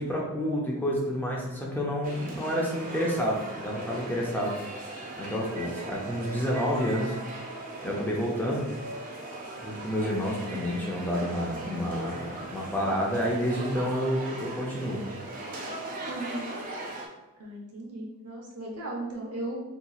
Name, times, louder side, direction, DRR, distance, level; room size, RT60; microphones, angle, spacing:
voice 1, 0.0-4.6 5.2-7.2 7.8-8.7 9.6-12.2 12.5-15.0, equal, 10° left, -3 dB, 0.5 m, -29 dB
sound 1, 2.0-17.1, right 2 dB, 40° right, 0.5 m, -39 dB
voice 2, 16.0-16.5 17.4-19.6, right 1 dB, 75° right, -2 dB, 0.9 m, -36 dB
4.0 x 2.9 x 2.3 m, 1.0 s
head